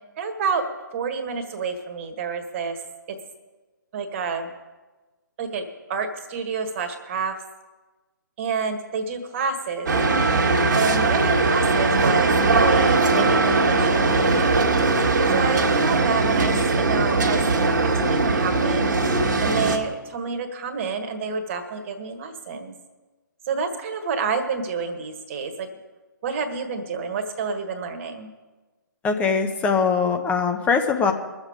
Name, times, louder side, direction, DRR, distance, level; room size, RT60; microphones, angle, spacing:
voice 1, 0.2-0.6 0.9-2.8 3.9-4.5 5.4-5.6 5.9-7.3 8.4-9.9 10.7-14.6 15.3-17.4 17.8-18.9 19.4-22.7 23.5-25.7 26.2-28.3, right 5 dB, 40° right, 5 dB, 1.6 m, -28 dB
sound 1, 9.9-19.8, right 3 dB, 60° right, 1.6 m, -20 dB
voice 2, 29.0-31.1, left 5 dB, 10° left, 5 dB, 0.9 m, -21 dB
22.0 x 7.3 x 5.1 m, 1.2 s
figure-of-eight pair, 140°, 11 cm